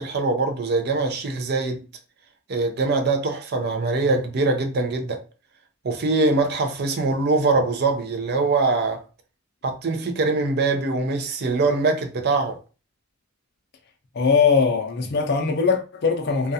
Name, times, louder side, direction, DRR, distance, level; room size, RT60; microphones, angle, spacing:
voice 1, 0.0-1.8 2.5-5.2 5.8-9.0 9.6-12.6, right 3 dB, 50° right, 0.5 m, -23 dB
voice 2, 14.1-16.5, left 5 dB, 50° left, 0.4 m, -21 dB
2.3 x 2.2 x 2.6 m
head